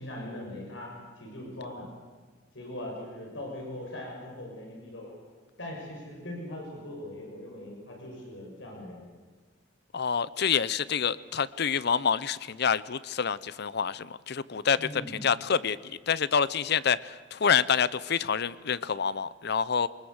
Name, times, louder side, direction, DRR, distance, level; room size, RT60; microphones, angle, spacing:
voice 1, 0.0-1.9 2.5-5.1 5.6-9.0 14.8-15.2, left 1 dB, 75° left, -1 dB, 6.5 m, -40 dB
voice 2, 9.9-19.9, left 7 dB, 60° left, 18 dB, 0.7 m, -27 dB
23.5 x 20.5 x 8.1 m, 1.4 s
head